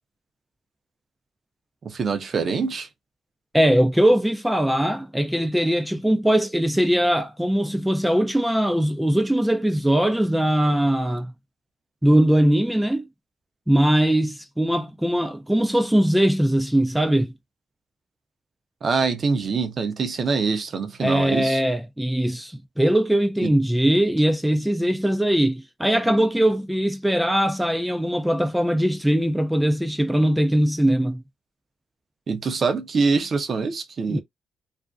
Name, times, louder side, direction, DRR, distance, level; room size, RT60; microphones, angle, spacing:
voice 1, 1.8-2.9 18.8-21.6 23.4-23.5 32.3-34.2, right 4 dB, 50° right, 0.6 m, -24 dB
voice 2, 3.5-11.3 12.0-13.1 13.7-17.3 21.0-31.2 34.1-34.2, right 1 dB, 5° right, 0.4 m, -21 dB
2.5 x 2.1 x 2.4 m
supercardioid pair, 60°, 0 cm